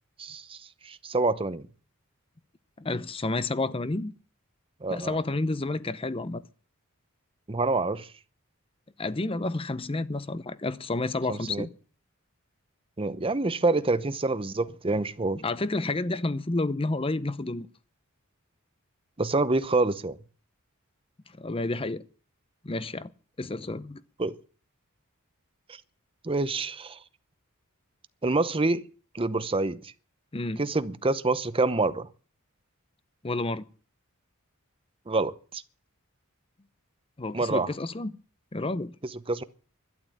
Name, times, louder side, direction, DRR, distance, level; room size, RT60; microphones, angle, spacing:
voice 1, 0.2-0.6 0.8-1.7 4.8-5.2 7.5-8.1 11.3-11.7 13.0-15.4 19.2-20.2 24.2-24.4 26.2-27.0 28.2-28.8 29.1-29.8 30.6-32.1 35.1-35.6 37.3-37.7 39.3-39.4, right 3 dB, 25° right, 0.8 m, -27 dB
voice 2, 2.8-4.1 4.9-6.4 9.0-11.7 15.4-17.7 21.4-22.0 22.6-23.1 23.4-24.0 30.3-30.6 33.2-33.6 37.2-38.2 38.5-38.9, left 2 dB, 25° left, 0.7 m, -30 dB
12.5 x 11.5 x 8.5 m
head